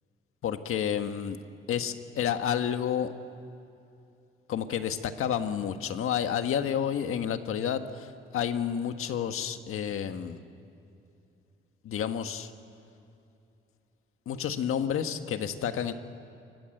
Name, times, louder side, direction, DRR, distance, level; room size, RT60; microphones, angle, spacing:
voice 1, 0.4-1.4 1.7-3.1 4.5-10.4 11.8-12.5 14.2-15.9, left 9 dB, 85° left, 8 dB, 1.6 m, -30 dB
28.5 x 24.0 x 7.9 m, 2.7 s
cardioid pair, 140°, 21 cm